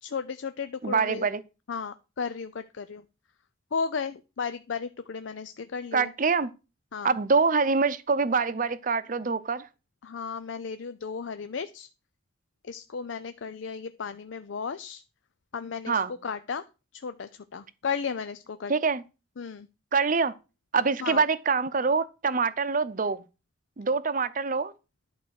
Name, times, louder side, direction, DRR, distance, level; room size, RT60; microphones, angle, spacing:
voice 1, 0.0-1.3 1.7-3.0 3.7-6.1 6.9-7.1 10.0-11.9 12.6-15.0 15.5-16.6 16.9-18.7 19.4-19.7 21.0-21.2, left 5 dB, 80° left, 0.5 m, -34 dB
voice 2, 0.8-1.4 5.9-6.5 7.0-9.7 15.9-16.1 18.7-19.0 19.9-20.3 20.7-23.2 23.8-24.7, right 4 dB, 45° right, 0.7 m, -25 dB
11.0 x 4.7 x 6.4 m
head